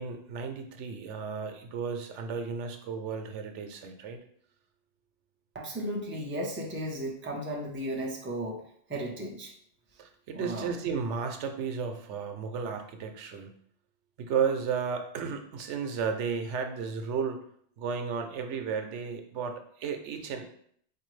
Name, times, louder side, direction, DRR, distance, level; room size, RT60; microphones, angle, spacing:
voice 1, 0.0-4.2 10.0-13.5 14.2-17.4 17.8-20.4, right 6 dB, 85° right, 5 dB, 0.9 m, -33 dB
voice 2, 5.5-8.6 8.9-9.5 10.3-10.7, right 1 dB, 15° right, 0 dB, 0.4 m, -35 dB
4.6 x 2.6 x 3.1 m, 0.64 s
omnidirectional pair, 1.2 m